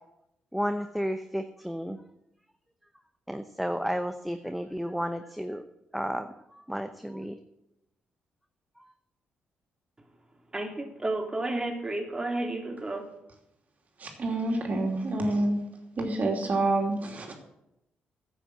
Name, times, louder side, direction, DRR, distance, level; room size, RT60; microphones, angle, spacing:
voice 1, 0.5-2.0 3.3-5.6 5.9-7.4, equal, ahead, 0.8 m, -32 dB
voice 2, 10.5-13.1, right 2 dB, 20° right, 2.6 m, -31 dB
voice 3, 14.0-15.6 16.0-17.3, right 2 dB, 50° right, 2.8 m, -27 dB
10.5 x 8.1 x 7.9 m
cardioid pair, 70°, 4 cm